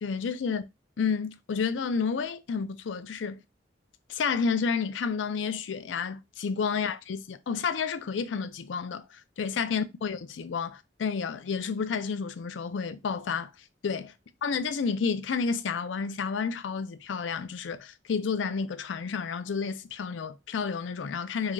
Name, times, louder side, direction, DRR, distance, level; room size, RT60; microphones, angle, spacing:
voice 1, 0.0-0.6 1.0-3.4 4.1-13.5 13.8-14.1 14.4-21.5, left 5 dB, 75° left, 0.4 m, -30 dB
4.7 x 2.7 x 2.2 m
head